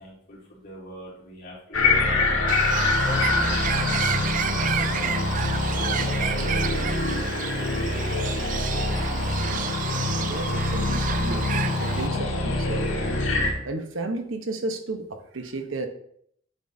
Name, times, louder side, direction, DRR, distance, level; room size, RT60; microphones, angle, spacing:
voice 1, 0.0-5.1 5.8-9.4, equal, 55° left, -7 dB, 3.7 m, -42 dB
sound 1, 1.7-13.5, left 2 dB, 85° left, 1.7 m, -25 dB
Bird, 2.5-12.1, right 9 dB, 45° right, 0.3 m, -31 dB
voice 2, 10.2-11.4 11.8-13.3 13.6-15.9, right 2 dB, 85° right, 6 dB, 1.1 m, -33 dB
9.1 x 7.6 x 2.8 m, 0.67 s
head